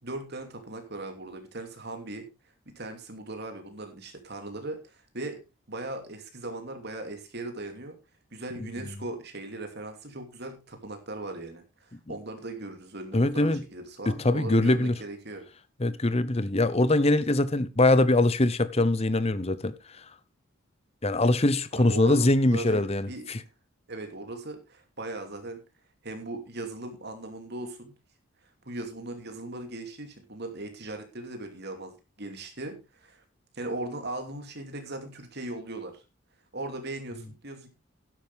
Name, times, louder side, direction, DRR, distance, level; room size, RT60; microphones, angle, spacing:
voice 1, 0.0-2.3 2.7-5.4 5.7-7.9 8.3-15.4 21.7-23.3 23.9-25.6 26.0-27.9 28.6-31.9 32.2-33.2 33.5-36.0 36.5-37.7, right 2 dB, 50° right, 2.8 m, -38 dB
voice 2, 13.1-13.6 14.1-15.0 15.8-19.7 21.0-23.4, left 2 dB, 30° left, 0.8 m, -23 dB
12.5 x 10.5 x 3.5 m
head